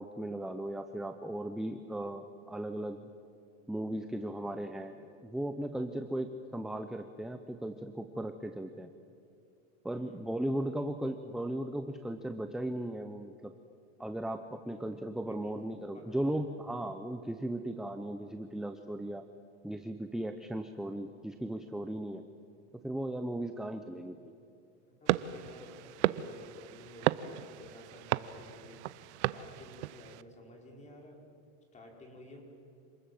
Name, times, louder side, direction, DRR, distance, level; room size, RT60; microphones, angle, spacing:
voice 1, 0.0-3.1 3.7-5.0 5.2-8.9 9.8-13.5 14.0-19.3 19.6-22.2 22.8-24.3, right 1 dB, ahead, 7 dB, 0.7 m, -37 dB
voice 2, 9.9-10.2 14.6-14.9 15.3-15.6 15.9-16.4 24.9-28.8 29.3-31.2 31.7-32.4, left 1 dB, 20° left, 1 dB, 5.1 m, -53 dB
sound 1, 25.1-30.2, right 15 dB, 85° right, 0.8 m, -34 dB
27.0 x 20.0 x 7.8 m, 2.6 s
supercardioid pair, 130°, 34 cm